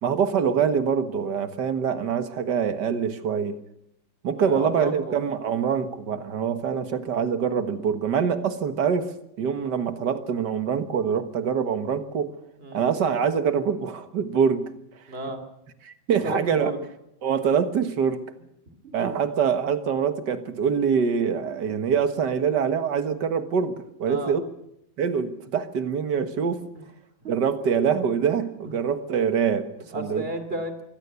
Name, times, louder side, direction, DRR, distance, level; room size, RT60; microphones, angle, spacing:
voice 1, 0.0-3.6 4.2-9.1 9.4-12.4 12.7-14.7 15.8-16.7 17.2-18.2 18.9-24.4 25.0-26.6 27.3-30.3, right 7 dB, 65° right, 10 dB, 2.0 m, -24 dB
voice 2, 4.3-5.2 9.5-9.7 12.6-12.8 15.1-15.4 16.2-16.8 18.8-19.1 24.1-24.3 26.8-26.9 27.2-27.3 29.9-30.8, right 1 dB, 30° right, 9 dB, 2.9 m, -33 dB
24.0 x 16.5 x 8.3 m, 0.81 s
omnidirectional pair, 2.1 m